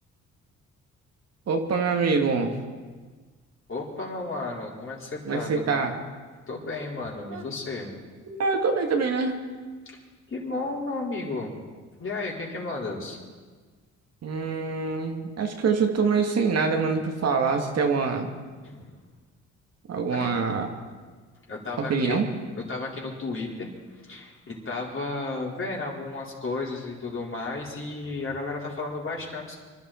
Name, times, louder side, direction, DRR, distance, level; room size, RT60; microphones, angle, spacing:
voice 1, 1.5-2.6 5.3-5.9 7.3-7.4 8.3-9.4 14.2-18.3 19.9-20.7 21.8-22.3, right 5 dB, 55° right, 3 dB, 1.9 m, -25 dB
voice 2, 3.7-5.7 6.5-7.9 9.8-10.0 10.3-11.5 12.0-13.2 18.6-19.0 20.1-20.3 21.5-22.2 22.5-23.7 24.0-29.5, left 3 dB, 45° left, -3 dB, 4.6 m, -33 dB
25.5 x 12.0 x 4.4 m, 1.4 s
cardioid pair, 90°, 30 cm